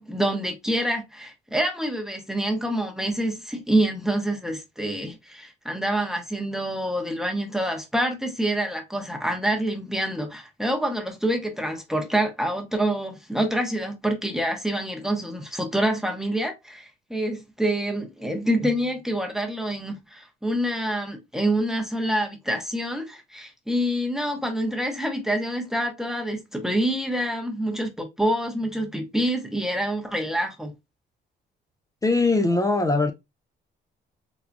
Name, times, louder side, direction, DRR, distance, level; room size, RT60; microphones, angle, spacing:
voice 1, 0.0-30.7, right 1 dB, ahead, 0.9 m, -26 dB
voice 2, 32.0-33.1, left 3 dB, 15° left, 0.5 m, -21 dB
4.5 x 2.2 x 2.6 m
cardioid pair, 90°, 20 cm